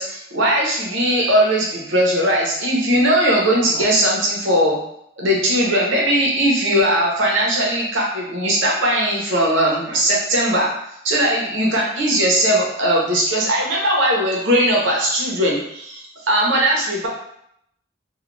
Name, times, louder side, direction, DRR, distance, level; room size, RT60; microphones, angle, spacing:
voice 1, 0.0-4.8 5.2-10.7 11.0-17.1, right 1 dB, 90° right, -3 dB, 0.8 m, -19 dB
2.4 x 2.2 x 3.1 m, 0.73 s
head